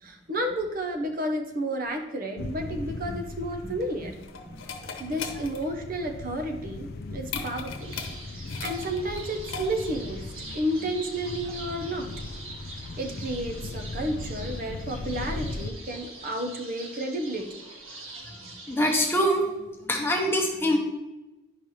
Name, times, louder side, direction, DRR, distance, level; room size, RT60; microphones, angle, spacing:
voice 1, 0.0-4.1 5.0-8.0 8.6-10.2 10.5-12.1 13.0-17.6, right 1 dB, 45° right, 4 dB, 0.7 m, -31 dB
sound 1, 2.4-15.7, left 2 dB, 50° left, 0.4 m, -39 dB
sound 2, 3.6-10.1, left 5 dB, 85° left, 0.9 m, -39 dB
sound 3, 7.8-19.1, right 2 dB, 90° right, 1.7 m, -44 dB
voice 2, 18.7-19.6 19.9-20.8, equal, 10° left, 0 dB, 0.9 m, -24 dB
10.5 x 5.4 x 3.1 m, 1.0 s
head